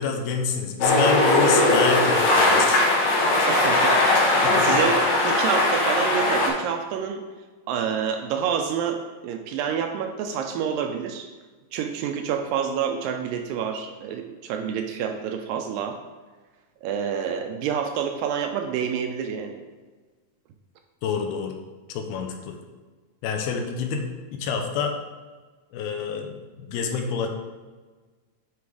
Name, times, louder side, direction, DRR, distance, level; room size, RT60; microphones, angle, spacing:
voice 1, 0.0-2.8 4.4-4.7 21.0-21.5 21.9-22.6 23.2-24.0 24.3-24.9 25.7-27.3, left 6 dB, 85° left, 3 dB, 2.6 m, -27 dB
sound 1, 0.8-6.5, left 2 dB, 60° left, 2.1 m, -19 dB
voice 2, 3.5-4.0 4.3-7.2 7.7-11.3 11.7-16.0 16.8-19.6, right 7 dB, 80° right, 5 dB, 2.1 m, -28 dB
9.6 x 3.5 x 4.7 m, 1.3 s
omnidirectional pair, 4.2 m